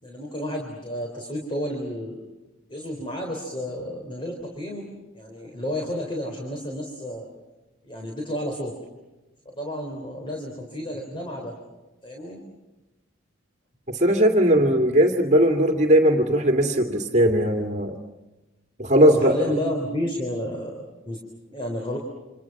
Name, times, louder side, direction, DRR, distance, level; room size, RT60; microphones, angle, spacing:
voice 1, 0.0-2.2 2.7-4.9 5.1-7.3 7.8-8.7 9.5-11.6 12.0-12.4 19.0-21.2 21.5-22.0, equal, 25° left, 1 dB, 3.9 m, -31 dB
voice 2, 13.9-17.9 18.8-19.4, equal, 35° right, 4 dB, 2.3 m, -19 dB
29.5 x 27.0 x 6.0 m, 1.1 s
head